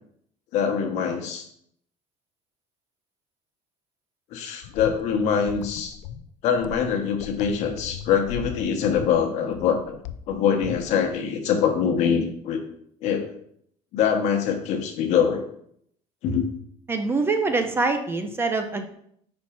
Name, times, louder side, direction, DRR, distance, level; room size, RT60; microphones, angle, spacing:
voice 1, 0.5-1.5 4.3-6.0 6.4-9.8 10.3-12.7 13.0-13.3 13.9-15.4 16.2-16.4, left 7 dB, 55° left, 5 dB, 1.1 m, -24 dB
sound 1, 4.6-11.2, left 9 dB, 75° left, 0.4 m, -39 dB
voice 2, 16.9-18.9, right 3 dB, 15° right, 7 dB, 0.5 m, -24 dB
4.5 x 4.4 x 5.8 m, 0.68 s
cardioid pair, 155°, 14 cm